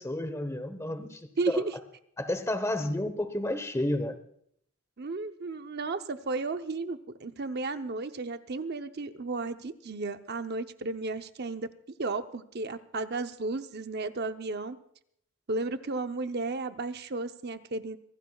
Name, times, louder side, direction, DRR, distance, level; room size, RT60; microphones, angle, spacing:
voice 1, 0.0-1.6 2.2-4.2, left 1 dB, 15° left, 10 dB, 1.0 m, -31 dB
voice 2, 1.4-1.7 5.0-11.7 12.0-14.8 15.5-18.0, right 3 dB, 50° right, 9 dB, 0.7 m, -33 dB
24.5 x 16.5 x 2.4 m, 0.67 s
head